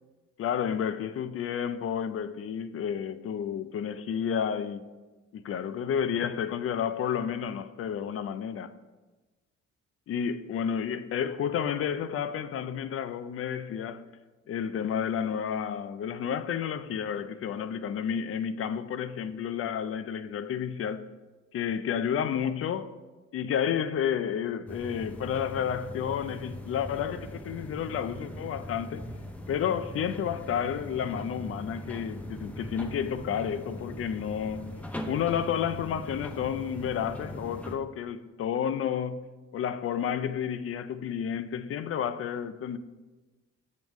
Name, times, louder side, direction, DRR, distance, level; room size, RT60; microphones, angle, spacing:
voice 1, 0.4-4.9 5.3-8.8 10.1-14.0 14.5-21.1 21.5-23.0 23.3-29.1 29.5-34.7 35.0-39.3 39.5-42.8, left 8 dB, 50° left, 0.4 m, -31 dB
sound 1, 24.7-37.7, left 1 dB, 5° left, 0.6 m, -41 dB
7.1 x 3.2 x 5.2 m
cardioid pair, 90°, 30 cm